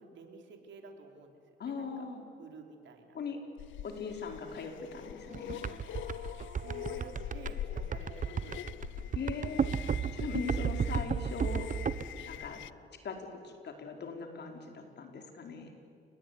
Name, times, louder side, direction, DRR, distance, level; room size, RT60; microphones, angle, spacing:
voice 1, 0.0-2.0 2.4-3.2 6.5-8.7 9.8-10.5 12.1-12.3, right 4 dB, 70° right, 3 dB, 4.4 m, -52 dB
voice 2, 1.6-2.2 3.1-3.4 3.8-5.6 9.1-9.8 10.1-11.7 12.3-12.6 13.0-13.2 13.4-15.7, left 5 dB, 60° left, 4 dB, 4.9 m, -40 dB
sound 1, 3.6-12.7, left 13 dB, 75° left, 0.7 m, -44 dB
sound 2, 5.3-12.0, right 7 dB, 40° right, 1.1 m, -33 dB
29.0 x 20.5 x 9.8 m, 2.3 s
cardioid pair, 90°, 20 cm